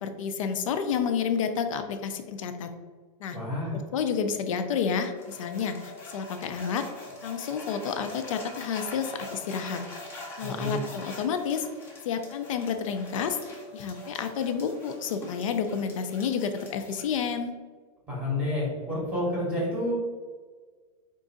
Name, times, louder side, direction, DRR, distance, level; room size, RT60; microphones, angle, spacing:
voice 1, 0.0-2.7 3.2-3.4 3.7-6.9 7.2-9.9 10.4-11.7 12.0-13.4 13.7-17.6, left 6 dB, 60° left, 8 dB, 0.5 m, -30 dB
voice 2, 3.3-3.8 10.4-10.8 18.1-19.9, left 1 dB, 5° right, -6 dB, 0.9 m, -29 dB
sound 1, 5.2-17.0, left 1 dB, 10° left, 0.6 m, -44 dB
4.6 x 2.5 x 3.9 m, 1.5 s
supercardioid pair, 175°, 19 cm